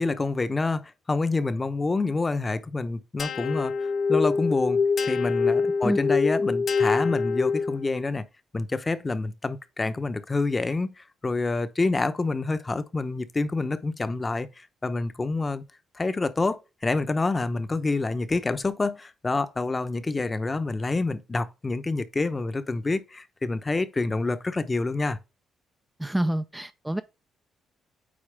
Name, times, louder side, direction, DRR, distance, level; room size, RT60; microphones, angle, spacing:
voice 1, 0.0-3.7 4.1-8.3 8.5-15.6 16.0-25.2, left 3 dB, 25° left, 0.8 m, -27 dB
sound 1, 3.2-8.0, left 5 dB, 55° left, 1.0 m, -25 dB
voice 2, 26.0-27.0, right 1 dB, 10° right, 0.4 m, -27 dB
8.7 x 4.3 x 3.3 m
cardioid pair, 90°, 0 cm